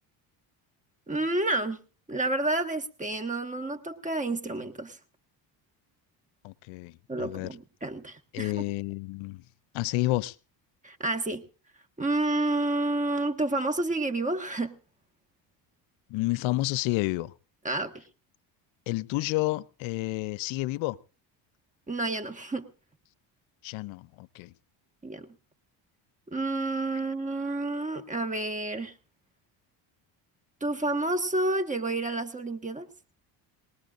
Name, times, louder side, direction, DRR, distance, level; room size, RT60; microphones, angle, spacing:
voice 1, 1.1-1.8 2.1-5.0 7.1-8.6 10.8-11.4 12.0-14.7 17.6-18.0 21.9-22.7 25.0-25.3 26.3-28.9 30.6-32.9, right 2 dB, 15° right, 1.5 m, -29 dB
voice 2, 6.4-6.9 7.2-7.5 8.3-9.4 9.7-10.4 16.1-17.3 18.9-21.0 23.6-24.5, left 19 dB, 75° left, 0.6 m, -30 dB
22.5 x 19.0 x 2.5 m
supercardioid pair, 90°, 48 cm